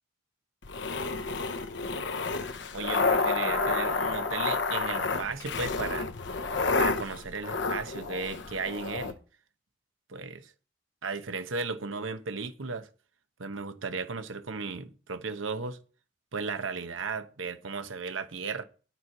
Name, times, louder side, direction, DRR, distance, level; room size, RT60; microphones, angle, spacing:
sound 1, 0.6-9.1, left 3 dB, 65° left, 0.9 m, -30 dB
voice 1, 2.7-6.1 6.8-9.2 10.1-10.5 11.0-12.9 13.4-15.8 16.3-18.6, right 4 dB, 90° right, 1.0 m, -35 dB
9.2 x 4.6 x 7.1 m
head